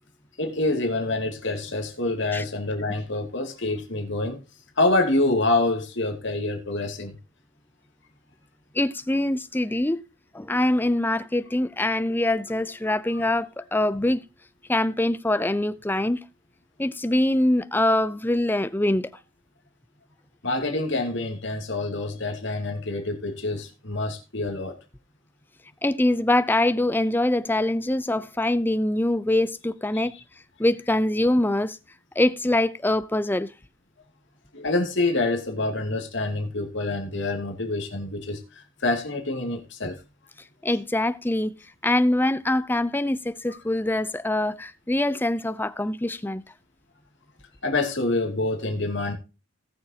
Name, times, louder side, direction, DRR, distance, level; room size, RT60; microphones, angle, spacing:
voice 1, 0.4-4.4 4.8-7.1 13.1-13.2 20.4-24.8 29.9-30.0 34.5-40.0 47.6-49.1, left 2 dB, 60° left, 2.4 m, -26 dB
voice 2, 8.7-10.0 10.3-14.2 14.7-16.2 16.8-19.1 25.8-30.1 30.6-31.8 32.2-33.5 40.6-41.5 41.8-46.4, left 1 dB, 10° left, 0.5 m, -24 dB
18.5 x 6.6 x 2.8 m
head